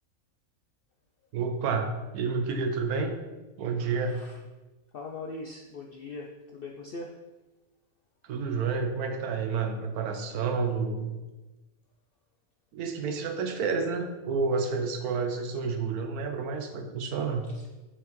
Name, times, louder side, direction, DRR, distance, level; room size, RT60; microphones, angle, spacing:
voice 1, 1.3-3.2 3.6-4.2 8.2-11.2 12.7-17.5, right 4 dB, 85° right, 5 dB, 1.2 m, -30 dB
voice 2, 4.9-7.1, left 3 dB, 70° left, 1 dB, 0.5 m, -40 dB
6.4 x 5.6 x 3.1 m, 1.1 s
omnidirectional pair, 1.5 m